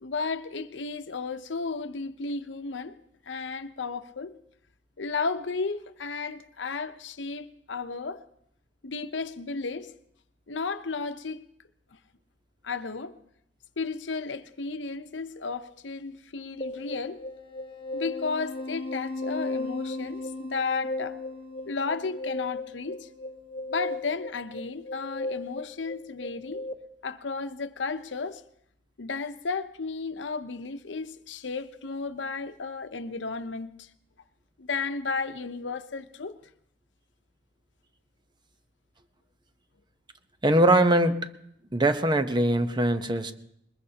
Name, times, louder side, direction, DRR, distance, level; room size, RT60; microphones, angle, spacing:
voice 1, 0.0-3.0 3.3-4.3 5.0-8.2 8.8-9.9 10.5-11.4 12.6-13.1 13.8-17.2 17.9-21.2 21.7-23.1 23.7-26.7 27.0-28.4 29.0-33.9 34.6-36.3, left 4 dB, 90° left, 0.8 m, -33 dB
sound 1, 16.6-26.7, left 2 dB, 30° left, 1.2 m, -36 dB
voice 2, 40.4-41.2 41.7-43.3, right 1 dB, 25° right, 0.9 m, -22 dB
21.5 x 21.5 x 2.9 m
head